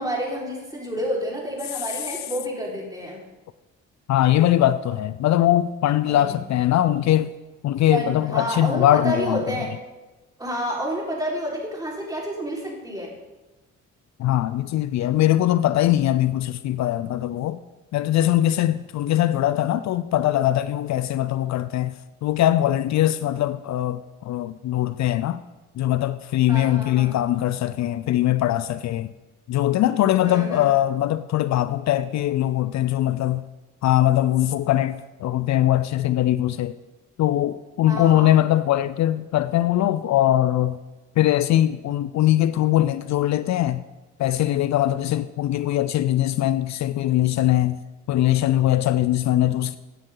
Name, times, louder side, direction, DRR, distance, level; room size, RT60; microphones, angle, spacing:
voice 1, 0.0-3.2 6.0-6.4 7.9-9.7 10.4-13.1 26.5-27.1 30.2-30.6 37.9-38.4, right 1 dB, 10° right, 4.7 m, -29 dB
voice 2, 4.1-7.3 7.6-9.4 14.2-17.6 17.9-21.9 22.2-25.4 25.8-29.1 29.5-33.4 33.8-36.8 37.2-40.8 41.2-43.8 44.2-47.8 48.1-49.8, left 13 dB, 65° left, 0.5 m, -21 dB
16.5 x 9.2 x 3.9 m
cardioid pair, 90°, 30 cm